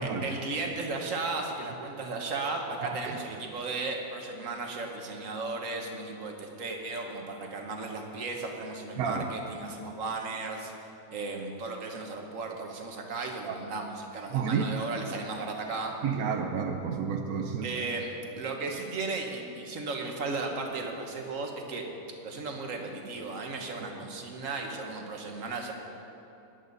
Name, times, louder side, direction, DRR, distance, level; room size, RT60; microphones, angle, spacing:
voice 1, 0.0-10.7 11.1-16.0 17.6-21.9 22.2-25.7, right 3 dB, 65° right, 2 dB, 1.7 m, -35 dB
voice 2, 2.8-3.2 9.0-9.3 13.5-13.6 14.3-14.6 16.0-17.7 23.8-23.9, right 6 dB, 90° right, 3 dB, 1.2 m, -30 dB
18.0 x 11.0 x 4.1 m, 2.9 s
omnidirectional pair, 1.5 m